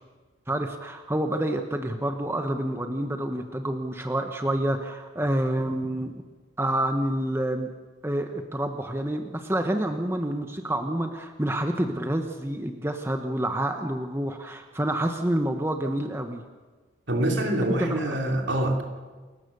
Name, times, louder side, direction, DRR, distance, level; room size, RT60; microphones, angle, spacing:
voice 1, 0.5-6.2 6.6-7.7 8.0-16.4 17.7-18.2, right 1 dB, 15° right, 5 dB, 1.1 m, -28 dB
voice 2, 17.1-18.8, right 1 dB, 70° right, 2 dB, 3.1 m, -25 dB
29.0 x 14.5 x 6.8 m, 1.4 s
head